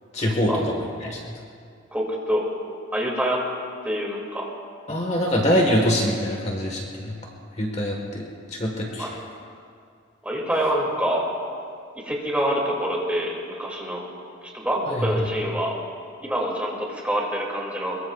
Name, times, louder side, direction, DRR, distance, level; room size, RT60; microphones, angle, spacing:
voice 1, 0.1-0.8 1.0-1.3 4.9-7.2 7.6-9.1 14.9-15.1, equal, 30° left, 0 dB, 1.5 m, -24 dB
voice 2, 1.9-2.5 2.9-3.4 3.8-4.5 9.0-9.1 10.2-11.3 12.0-14.0 14.5-15.7 16.2-18.0, equal, 5° right, -3 dB, 2.5 m, -26 dB
23.5 x 22.5 x 2.4 m, 2.3 s
head